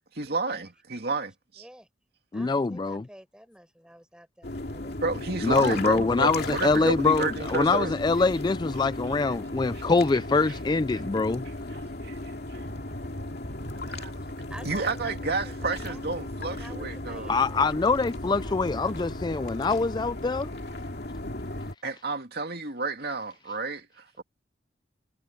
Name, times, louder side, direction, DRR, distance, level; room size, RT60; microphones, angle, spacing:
voice 1, 0.2-1.6 5.0-7.9 9.7-9.8 10.4-10.6 11.7-12.6 13.9-14.1 14.6-17.3 21.8-24.2, right 3 dB, 55° right, 2.6 m, -31 dB
voice 2, 1.6-1.9 2.3-5.1 14.5-17.9 18.4-19.1 19.5-19.7, equal, 5° right, 4.5 m, -50 dB
voice 3, 2.3-3.0 5.4-11.4 17.3-20.5, left 3 dB, 25° left, 0.3 m, -24 dB
sound 1, 4.4-21.7, left 1 dB, 60° left, 2.5 m, -36 dB
head